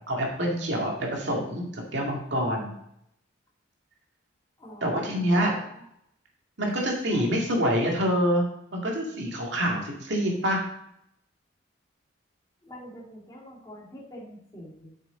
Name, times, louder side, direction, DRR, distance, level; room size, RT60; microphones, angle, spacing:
voice 1, 0.1-2.7 4.8-5.5 6.6-8.4 8.7-10.7, equal, 65° right, -1 dB, 2.2 m, -26 dB
voice 2, 4.6-5.8 6.7-7.3 12.6-14.9, left 1 dB, 20° left, -5 dB, 2.2 m, -45 dB
8.4 x 6.6 x 3.9 m, 0.75 s
head